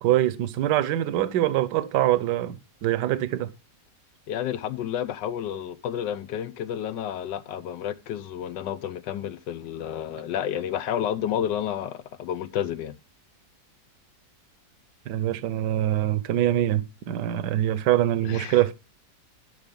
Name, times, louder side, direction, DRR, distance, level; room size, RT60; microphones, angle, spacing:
voice 1, 0.0-2.6 2.8-3.5 15.1-18.7, right 13 dB, 75° right, 1.3 m, -24 dB
voice 2, 4.3-12.9 18.2-18.6, left 10 dB, 85° left, 1.4 m, -30 dB
12.0 x 4.9 x 5.2 m
omnidirectional pair, 1.9 m